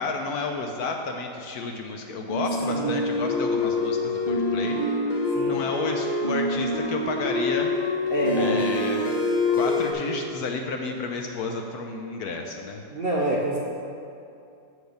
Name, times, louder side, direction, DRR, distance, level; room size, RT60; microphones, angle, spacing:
voice 1, 0.0-4.8 5.5-7.7 8.4-9.1 9.5-12.8, left 4 dB, 70° left, 3 dB, 1.0 m, -31 dB
sound 1, 2.3-9.9, left 2 dB, 35° left, 0.6 m, -25 dB
voice 2, 8.1-8.6 12.9-13.6, right 1 dB, 60° right, -4 dB, 0.6 m, -27 dB
7.1 x 4.7 x 6.4 m, 2.5 s
omnidirectional pair, 1.9 m